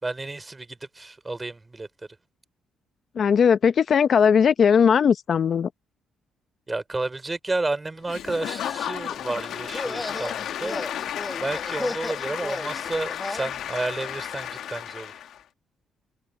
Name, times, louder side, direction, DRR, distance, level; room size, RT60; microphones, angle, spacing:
voice 1, 0.0-1.9 6.7-10.9 11.4-15.1, right 2 dB, 20° right, 3.3 m, -31 dB
voice 2, 3.2-5.7, left 7 dB, 55° left, 0.7 m, -18 dB
Applause / Crowd, 8.1-15.4, left 10 dB, 75° left, 1.5 m, -33 dB
sound 1, 9.7-13.5, left 2 dB, 15° left, 1.4 m, -34 dB
cardioid pair, 90°, 0 cm